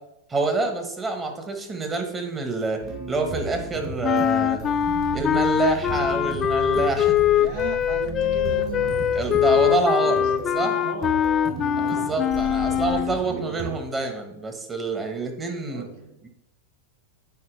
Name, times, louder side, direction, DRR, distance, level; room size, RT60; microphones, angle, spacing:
voice 1, 0.3-4.6 5.1-7.2 9.1-10.2 10.5-10.7 11.8-15.8, right 3 dB, 20° right, 4 dB, 1.4 m, -27 dB
sound 1, 2.8-13.7, right 4 dB, 45° right, 2.4 m, -35 dB
sound 2, 4.0-13.2, left 10 dB, 30° left, 0.3 m, -22 dB
voice 2, 7.4-10.3 10.6-11.2 11.7-13.9 15.4-16.2, right 5 dB, 60° right, 5 dB, 0.9 m, -38 dB
9.4 x 4.5 x 3.3 m, 0.86 s
hypercardioid pair, 100°, 0 cm